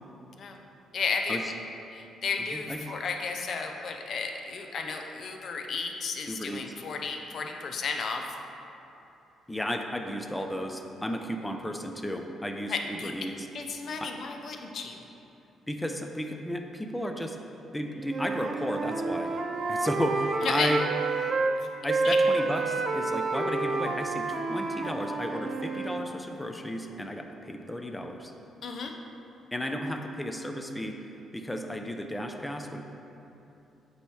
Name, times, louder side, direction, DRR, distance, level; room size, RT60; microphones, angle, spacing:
voice 1, 0.9-1.4 1.9-8.2 12.7-13.1 13.5-15.0 20.4-20.7 21.6-21.7 22.0-22.2 28.6-28.9, left 5 dB, 55° left, 3 dB, 0.6 m, -33 dB
voice 2, 6.3-6.6 9.5-13.5 14.0-14.1 15.7-17.4 17.7-19.3 19.7-20.8 21.8-28.3 29.5-31.1 31.3-32.8, equal, 10° left, 4 dB, 0.5 m, -33 dB
Wind instrument woodwind instrument, 18.0-21.5 21.9-26.1, right 3 dB, 45° right, 0.4 m, -29 dB
8.4 x 3.0 x 4.8 m, 2.9 s
cardioid pair, 90°, 0 cm